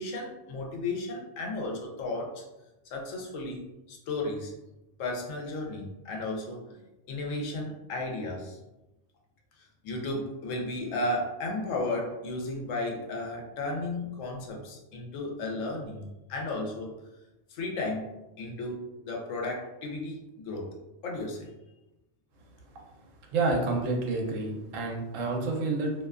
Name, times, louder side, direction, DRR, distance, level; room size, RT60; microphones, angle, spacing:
voice 1, 0.0-2.4 2.9-4.5 5.0-6.8 7.1-8.6 9.8-16.9 17.5-20.7 21.0-21.5, left 2 dB, 80° left, 0 dB, 1.0 m, -34 dB
voice 2, 23.3-25.9, right 3 dB, 85° right, 1 dB, 1.0 m, -29 dB
2.6 x 2.2 x 2.3 m, 0.97 s
omnidirectional pair, 1.3 m